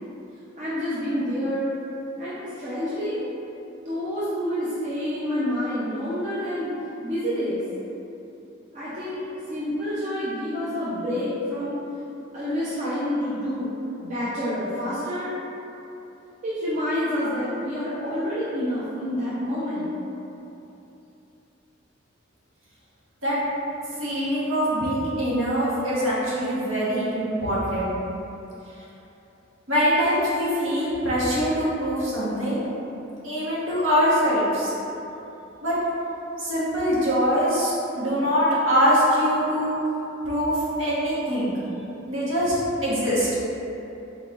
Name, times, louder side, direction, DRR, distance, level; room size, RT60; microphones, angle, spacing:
voice 1, 0.6-1.7 2.2-3.2 3.9-6.7 7.0-7.6 8.7-11.7 12.3-13.7 14.0-15.3 16.4-19.9, equal, 40° right, -10 dB, 0.6 m, -28 dB
voice 2, 24.0-27.9 29.7-32.7 33.2-34.7 35.6-35.8 36.4-39.7 40.2-41.5 42.1-42.5 42.8-43.3, equal, 75° right, -8 dB, 1.1 m, -23 dB
4.1 x 4.0 x 2.4 m, 3.0 s
head